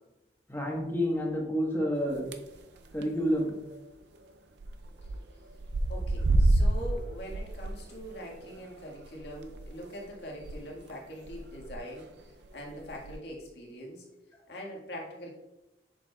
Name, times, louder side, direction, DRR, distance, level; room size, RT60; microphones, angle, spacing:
voice 1, 0.5-2.3 2.9-3.5, equal, 10° left, -1 dB, 1.2 m, -29 dB
sound 1, 2.1-2.6 2.9-3.2 3.5-3.6 3.8-3.9 4.6-5.2 5.5-10.6 10.9-11.0 11.3-11.8 12.4-13.1, right 2 dB, 70° right, 0.5 m, -29 dB
voice 2, 5.9-12.1 12.5-14.0 14.5-15.3, equal, 65° left, -2 dB, 1.7 m, -42 dB
7.5 x 6.2 x 2.3 m, 0.98 s
head